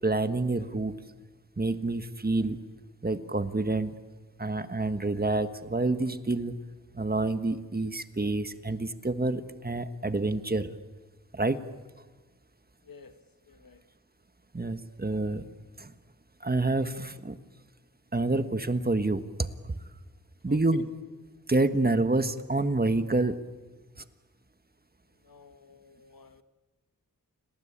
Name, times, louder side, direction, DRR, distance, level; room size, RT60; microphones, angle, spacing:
voice 1, 0.0-1.0 1.6-2.6 3.0-4.0 4.4-6.5 6.9-10.7 11.3-11.7 14.5-15.4 15.8-15.9 16.4-17.4 18.1-19.5 20.4-20.9 21.5-23.4 24.0-24.1, right 2 dB, 25° right, 10 dB, 1.4 m, -28 dB
voice 2, 13.5-13.8 20.5-20.8 25.2-26.4, left 6 dB, 75° left, 10 dB, 1.6 m, -50 dB
29.5 x 20.0 x 8.7 m, 1.3 s
wide cardioid pair, 75°, 34 cm